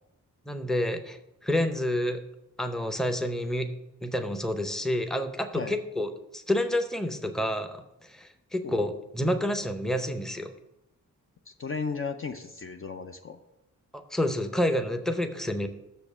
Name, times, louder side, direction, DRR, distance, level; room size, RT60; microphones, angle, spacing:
voice 1, 0.5-2.2 2.6-3.7 4.0-10.5 13.9-15.7, left 1 dB, ahead, 7 dB, 0.6 m, -29 dB
voice 2, 11.5-13.4, left 5 dB, 40° left, 7 dB, 0.5 m, -35 dB
6.7 x 5.2 x 6.9 m, 0.90 s
wide cardioid pair, 100°, 33 cm